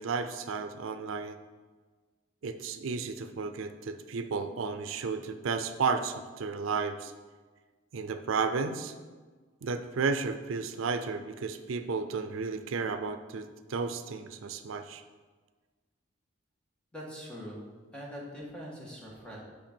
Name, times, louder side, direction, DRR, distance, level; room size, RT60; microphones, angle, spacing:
voice 1, 0.0-1.4 2.4-7.1 7.9-8.9 9.6-15.0, right 4 dB, 80° right, 9 dB, 0.5 m, -33 dB
voice 2, 16.9-17.7 17.9-19.4, equal, 5° left, -4 dB, 1.7 m, -42 dB
8.8 x 5.2 x 4.4 m, 1.4 s
head